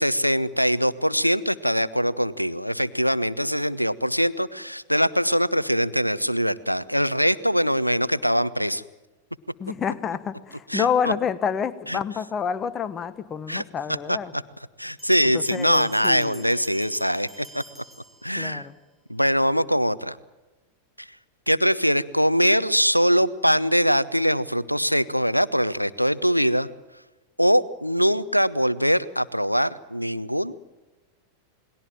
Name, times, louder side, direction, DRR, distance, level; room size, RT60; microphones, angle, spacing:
voice 1, 0.0-8.8 10.7-11.1 11.9-12.0 13.5-13.6 13.9-14.4 14.8-17.6 18.2-18.7 19.1-20.2 21.0-21.1 21.5-26.7 27.4-30.5, equal, 90° left, 19 dB, 0.8 m, -22 dB
voice 2, 9.6-14.3 15.3-16.4 18.4-18.7, left 7 dB, 25° left, 13 dB, 1.4 m, -28 dB
sound 1, 15.0-18.8, right 1 dB, 5° right, 2.3 m, -49 dB
28.5 x 20.5 x 7.5 m, 1.2 s
figure-of-eight pair, 90°, 0 cm